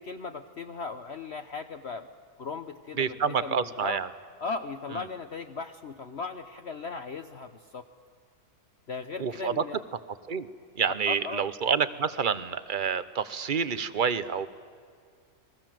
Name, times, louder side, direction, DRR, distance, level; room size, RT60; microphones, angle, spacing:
voice 1, 0.0-2.1 2.4-4.0 4.4-7.9 8.9-9.8 11.1-11.4, left 4 dB, 50° left, 7 dB, 1.0 m, -37 dB
voice 2, 3.0-4.1 9.2-9.6 10.3-10.5 10.7-14.5, right 6 dB, 40° right, 14 dB, 0.8 m, -28 dB
29.5 x 22.0 x 7.7 m, 2.2 s
omnidirectional pair, 1.7 m